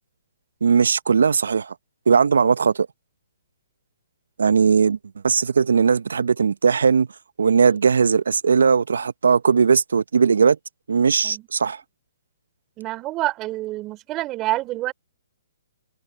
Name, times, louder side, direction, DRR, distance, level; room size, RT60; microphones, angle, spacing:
voice 1, 0.6-1.7 2.1-2.9 4.4-5.0 5.2-7.1 7.4-10.6 10.9-11.8, right 6 dB, 75° right, 0.9 m, -18 dB
voice 2, 12.8-14.9, right 17 dB, 25° right, 3.1 m, -27 dB
hypercardioid pair, 140°, 0 cm